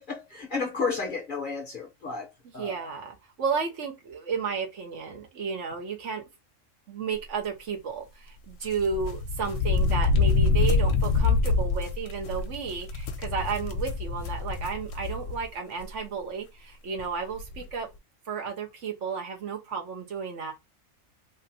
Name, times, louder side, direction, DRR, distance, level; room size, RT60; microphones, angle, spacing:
voice 1, 0.0-2.9, left 4 dB, 45° left, 0.8 m, -32 dB
voice 2, 2.4-6.2 6.9-17.9 18.3-20.5, right 5 dB, 65° right, 1.2 m, -33 dB
sound 1, 8.7-15.4 15.8-15.9 17.0-17.1 17.3-17.6, left 4 dB, 75° left, 1.0 m, -26 dB
3.2 x 2.5 x 2.6 m
omnidirectional pair, 1.4 m